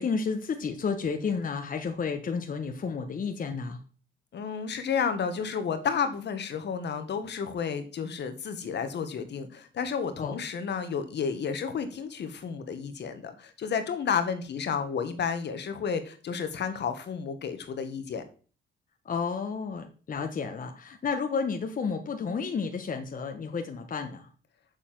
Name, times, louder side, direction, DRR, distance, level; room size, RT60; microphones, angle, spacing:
voice 1, 0.0-3.8 10.2-10.4 19.0-24.3, left 5 dB, 45° left, 1.3 m, -31 dB
voice 2, 4.3-18.2, left 6 dB, 60° left, 1.6 m, -31 dB
6.9 x 6.8 x 7.6 m
cardioid pair, 90°, 20 cm